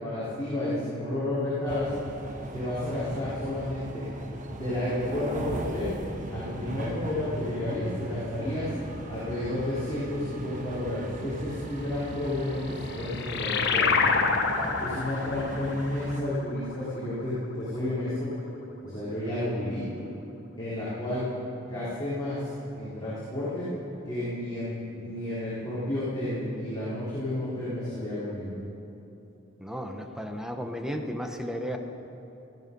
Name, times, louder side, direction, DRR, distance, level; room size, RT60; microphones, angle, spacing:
voice 1, 0.0-1.9 2.5-4.0 4.5-5.9 6.3-8.7 9.1-13.9 14.8-18.3 18.8-19.8 20.6-21.3 21.6-22.4 22.7-23.7 24.1-28.5, left 1 dB, 20° left, -12 dB, 4.1 m, -31 dB
sound 1, 1.7-16.2, right 1 dB, 40° right, 1.2 m, -38 dB
sound 2, 12.5-17.5, left 5 dB, 55° left, 1.2 m, -28 dB
voice 2, 29.6-31.8, equal, 5° right, 4 dB, 0.9 m, -34 dB
18.0 x 14.5 x 5.4 m, 2.9 s
head